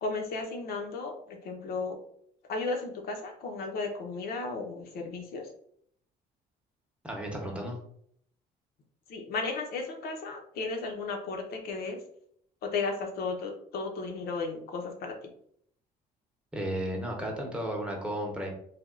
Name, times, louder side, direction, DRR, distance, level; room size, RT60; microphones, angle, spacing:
voice 1, 0.0-2.0 2.5-5.5 9.1-12.0 12.6-15.1, left 3 dB, 65° left, 3 dB, 0.7 m, -34 dB
voice 2, 7.0-7.8 16.5-18.5, equal, 5° right, 0 dB, 0.8 m, -33 dB
3.4 x 2.3 x 2.4 m, 0.65 s
cardioid pair, 110°, 17 cm